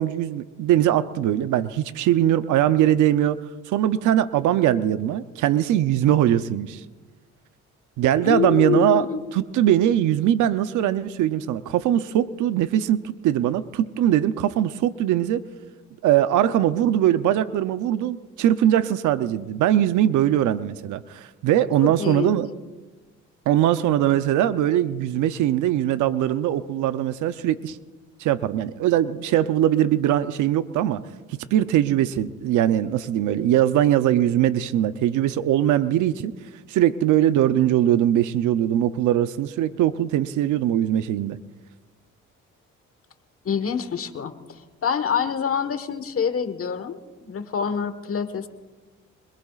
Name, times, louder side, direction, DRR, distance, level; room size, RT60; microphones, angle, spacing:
voice 1, 0.0-3.4 3.7-6.8 8.0-9.0 9.3-15.4 16.0-22.5 23.5-27.8 28.2-31.0 31.3-36.3 36.7-41.4, right 11 dB, 80° right, 12 dB, 0.7 m, -21 dB
voice 2, 8.2-9.2 22.0-22.4 43.4-48.5, left 7 dB, 50° left, 9 dB, 1.4 m, -26 dB
26.0 x 21.5 x 2.4 m, 1.2 s
cardioid pair, 90°, 30 cm